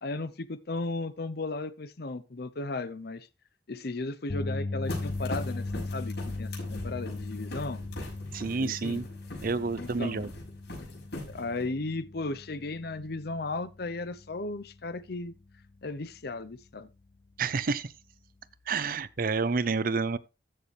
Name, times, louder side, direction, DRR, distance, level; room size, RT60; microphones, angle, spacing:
voice 1, 0.0-3.3 3.7-7.8 8.6-9.0 9.8-10.2 11.3-15.3 15.8-16.9, left 2 dB, 65° left, 0.8 m, -35 dB
sound 1, 4.3-16.6 16.9-17.2 19.3-19.4, left 2 dB, 30° left, 0.5 m, -39 dB
sound 2, 4.9-11.7, left 1 dB, 80° left, 6.1 m, -42 dB
voice 2, 8.3-9.1 9.4-10.3 17.4-17.9 18.7-20.2, right 4 dB, 55° right, 0.6 m, -29 dB
14.0 x 6.8 x 3.3 m
head